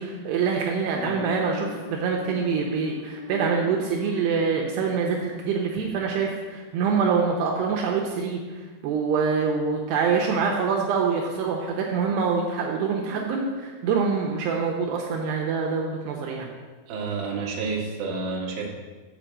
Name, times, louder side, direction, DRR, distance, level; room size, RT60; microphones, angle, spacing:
voice 1, 0.0-16.5, right 5 dB, 80° right, 0 dB, 2.8 m, -25 dB
sound 1, 0.9-6.5 6.7-6.8, left 7 dB, 75° left, 3.1 m, -41 dB
voice 2, 16.9-18.7, right 4 dB, 60° right, -3 dB, 2.7 m, -29 dB
8.0 x 5.3 x 7.4 m, 1.3 s
omnidirectional pair, 4.9 m